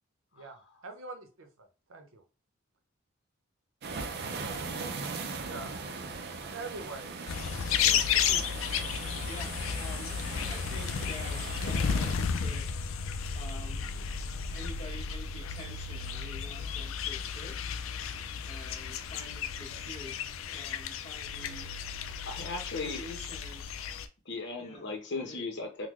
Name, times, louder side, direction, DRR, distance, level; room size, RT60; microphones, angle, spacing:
voice 1, 0.3-2.2 5.4-5.7 6.4-7.2 8.2-8.4, right 3 dB, 90° right, 5 dB, 0.8 m, -44 dB
sound 1, 3.8-12.2, right 4 dB, 55° right, 0.5 m, -39 dB
sound 2, 7.3-24.1, left 7 dB, 75° left, 0.4 m, -33 dB
voice 2, 7.5-8.7 9.2-10.1 10.5-12.6 13.3-14.1 14.5-17.8 18.4-20.2 20.5-21.7 22.7-23.6 24.6-24.9 25.2-25.4, left 1 dB, 35° left, -1 dB, 1.2 m, -47 dB
voice 3, 22.3-23.0 24.2-25.9, left 3 dB, 60° left, 3 dB, 0.9 m, -37 dB
3.8 x 2.2 x 3.1 m, 0.33 s
head